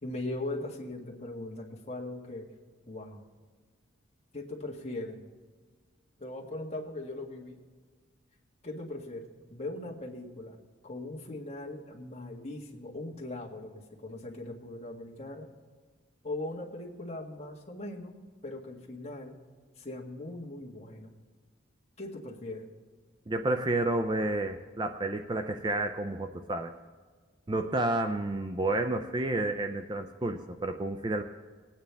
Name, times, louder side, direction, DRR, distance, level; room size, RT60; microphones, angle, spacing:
voice 1, 0.0-2.5 2.9-3.2 4.3-5.2 6.2-7.6 8.6-10.6 10.8-15.5 16.2-18.1 18.4-19.4 19.8-21.1 22.0-22.7, left 2 dB, 30° left, -2 dB, 1.7 m, -39 dB
voice 2, 23.3-26.7 27.5-31.2, right 2 dB, 20° right, 6 dB, 0.4 m, -30 dB
20.0 x 9.1 x 3.4 m, 1.5 s
head